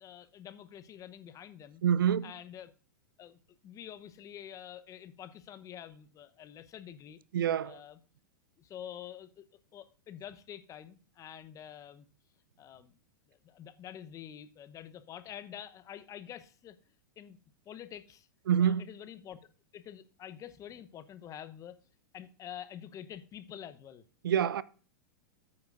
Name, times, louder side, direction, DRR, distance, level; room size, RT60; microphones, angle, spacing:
voice 1, 0.0-1.8 2.2-2.7 3.2-7.2 7.6-8.0 8.6-9.5 9.7-12.1 12.6-13.0 13.3-16.8 17.2-17.4 17.6-18.3 18.6-19.4 19.7-21.8 22.1-24.0, left 10 dB, 30° left, 0.9 m, -47 dB
voice 2, 1.8-2.3 7.3-7.8 18.5-18.9 24.2-24.6, right 9 dB, 80° right, 0.4 m, -26 dB
13.5 x 8.6 x 2.6 m
hypercardioid pair, 105°, 11 cm